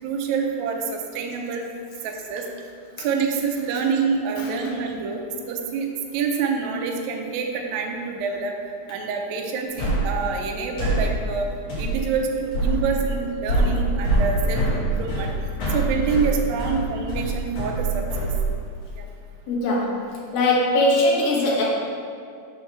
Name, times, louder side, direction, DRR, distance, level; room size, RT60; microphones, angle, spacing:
voice 1, 0.0-1.7 2.0-2.5 3.0-5.2 5.5-8.6 8.9-11.5 11.8-15.3 15.7-18.3 18.9-19.1, right 5 dB, 80° right, 2 dB, 1.6 m, -27 dB
sound 1, 9.8-18.9, right 2 dB, 55° left, 2.5 m, -25 dB
voice 2, 19.5-19.9 20.3-21.6, left 1 dB, 90° left, -4 dB, 2.9 m, -20 dB
6.2 x 3.3 x 5.9 m, 2.3 s
omnidirectional pair, 4.0 m